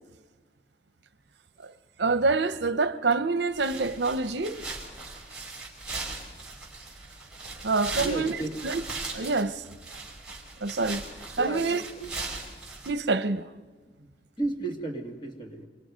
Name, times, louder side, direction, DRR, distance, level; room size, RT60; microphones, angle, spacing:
voice 1, 2.0-4.6 7.6-8.3 8.6-8.8 9.1-9.6 10.6-11.0 11.4-11.8 12.9-13.5, right 3 dB, 65° right, 0.8 m, -26 dB
sound 1, 3.5-12.9, right 3 dB, 5° right, 5.4 m, -39 dB
voice 2, 7.9-8.6 11.3-12.1 14.0-14.1 14.4-15.7, right 2 dB, 25° left, 2.6 m, -34 dB
28.0 x 24.5 x 5.2 m
head